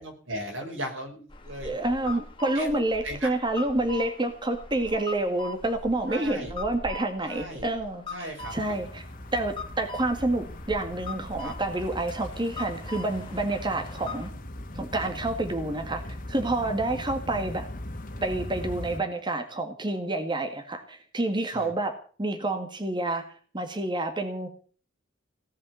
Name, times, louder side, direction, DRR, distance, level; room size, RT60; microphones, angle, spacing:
voice 1, 0.0-2.2 2.5-3.3 6.1-6.5 7.2-7.7 8.1-8.8 11.4-11.5 15.0-15.1 16.6-16.7 21.5-21.7, right 1 dB, 85° right, 2 dB, 5.6 m, -38 dB
sound 1, 1.3-14.3, left 3 dB, 25° left, 1.9 m, -42 dB
voice 2, 1.6-9.0 9.3-14.3 14.7-17.7 18.2-21.9 22.2-23.2 23.5-24.5, right 2 dB, 25° right, 4 dB, 2.0 m, -28 dB
sound 2, 8.4-19.0, left 1 dB, 45° left, 2.0 m, -39 dB
17.5 x 7.3 x 9.4 m, 0.43 s
head